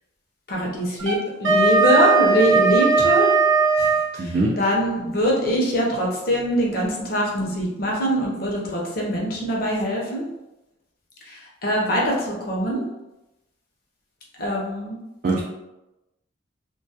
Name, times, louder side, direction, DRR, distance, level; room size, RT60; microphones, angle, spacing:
voice 1, 0.5-3.3 3.8-10.3 11.2-12.8 14.4-15.0, equal, 50° left, -2 dB, 0.6 m, -23 dB
Wind instrument woodwind instrument, 1.0-4.1, right 4 dB, 80° right, 0.7 m, -18 dB
voice 2, 4.2-4.6 15.2-15.4, right 2 dB, 50° right, -3 dB, 0.3 m, -22 dB
2.2 x 2.1 x 2.7 m, 0.96 s
head